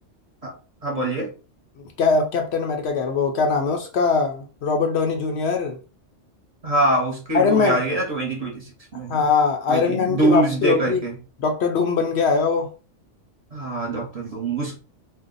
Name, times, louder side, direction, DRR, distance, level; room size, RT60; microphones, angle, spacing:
voice 1, 0.8-1.3 6.6-8.6 8.9-9.1 9.7-11.2 13.5-14.8, right 2 dB, 35° right, 0.9 m, -24 dB
voice 2, 2.0-5.8 7.3-7.8 9.1-11.0 11.4-12.7, left 5 dB, 65° left, 0.8 m, -21 dB
2.6 x 2.1 x 3.8 m
omnidirectional pair, 1.2 m